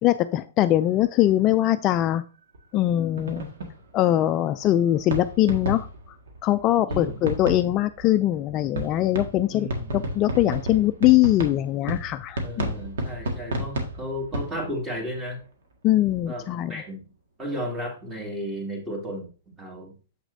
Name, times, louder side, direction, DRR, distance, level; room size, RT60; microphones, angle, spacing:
voice 1, 0.0-2.2 2.7-3.5 3.9-5.9 6.4-12.7 15.8-16.7, left 14 dB, 30° left, 11 dB, 0.3 m, -22 dB
sound 1, 0.8-1.3 2.5-2.6 2.9-3.0 3.2-15.4 16.0-16.3, right 1 dB, 75° right, 1.7 m, -33 dB
voice 2, 6.9-7.2 9.5-10.0 12.4-15.4 16.2-17.1 17.4-19.3 19.6-19.9, equal, 15° right, 1 dB, 2.4 m, -33 dB
7.3 x 6.0 x 2.7 m, 0.36 s
hypercardioid pair, 140°, 0 cm